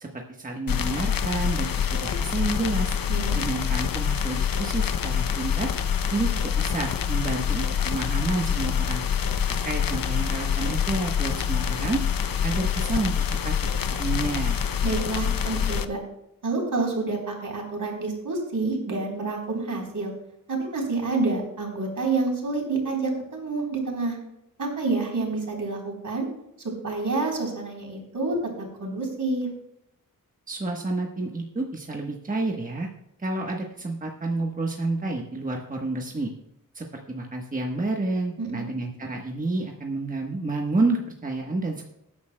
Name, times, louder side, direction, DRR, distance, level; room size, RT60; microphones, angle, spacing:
voice 1, 0.0-3.0 3.3-5.7 6.1-9.0 9.6-12.0 12.4-13.5 14.0-14.6 30.5-32.9 33.2-36.3 36.7-41.8, right 2 dB, 25° right, 1 dB, 1.1 m, -29 dB
sound 1, 0.7-15.9, left 8 dB, 80° left, 0.7 m, -26 dB
voice 2, 14.8-16.0 16.4-20.1 20.5-24.2 24.6-26.3 26.8-29.5 38.4-38.7, right 3 dB, 65° right, 0 dB, 3.8 m, -28 dB
19.5 x 9.7 x 2.2 m, 0.84 s
wide cardioid pair, 130°, 34 cm